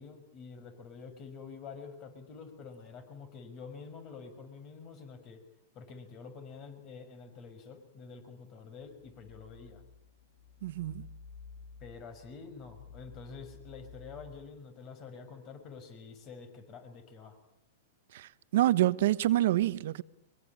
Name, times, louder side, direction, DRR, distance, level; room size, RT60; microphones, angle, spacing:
voice 1, 0.0-5.4 5.7-9.8 11.8-17.4, left 5 dB, 35° left, 6.0 m, -48 dB
sound 1, 9.0-14.6, left 5 dB, 70° left, 1.8 m, -53 dB
voice 2, 10.6-11.1 18.1-20.0, right 14 dB, 65° right, 1.1 m, -27 dB
23.5 x 23.5 x 8.7 m
hypercardioid pair, 135°, 0 cm